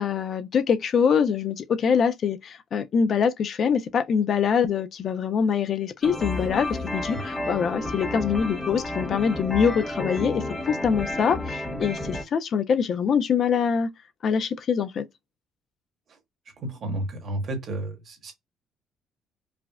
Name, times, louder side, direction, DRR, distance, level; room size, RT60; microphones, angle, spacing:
voice 1, 0.0-13.9 14.2-15.0, left 6 dB, 40° left, 0.3 m, -24 dB
sound 1, 6.0-12.2, left 1 dB, 10° left, 0.7 m, -31 dB
voice 2, 16.6-18.3, right 1 dB, 40° right, 1.3 m, -31 dB
4.8 x 2.0 x 2.3 m
cardioid pair, 165°, 0 cm